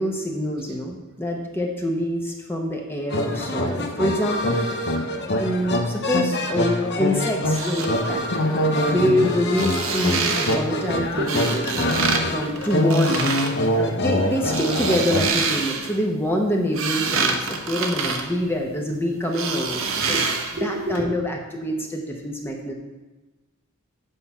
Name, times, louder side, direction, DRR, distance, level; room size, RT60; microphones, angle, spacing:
voice 1, 0.0-4.7 5.4-8.2 8.9-13.2 13.7-20.2 20.5-22.7, equal, 10° left, 1 dB, 0.9 m, -26 dB
sound 1, 3.1-15.3, left 1 dB, 55° left, 0.9 m, -24 dB
sound 2, 7.4-7.9 9.4-10.6 11.3-12.2 12.5-13.5 14.3-16.0 16.5-18.9 19.3-20.6 20.9-21.0, right 5 dB, 70° right, 1.0 m, -26 dB
voice 2, 20.6-21.0, right 2 dB, 50° right, 2 dB, 1.4 m, -29 dB
8.4 x 5.7 x 5.5 m, 1.1 s
head